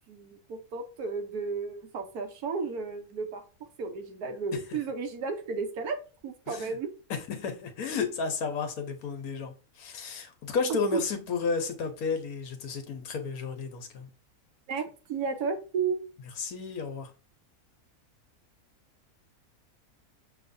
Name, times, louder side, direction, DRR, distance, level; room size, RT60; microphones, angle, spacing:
voice 1, 0.1-3.4 3.8-6.0 6.2-6.9 10.7-11.0 14.7-16.0, right 5 dB, 80° right, 1.3 m, -33 dB
voice 2, 7.1-14.1 16.4-17.1, left 5 dB, 75° left, 1.2 m, -32 dB
6.0 x 3.0 x 2.6 m
omnidirectional pair, 1.6 m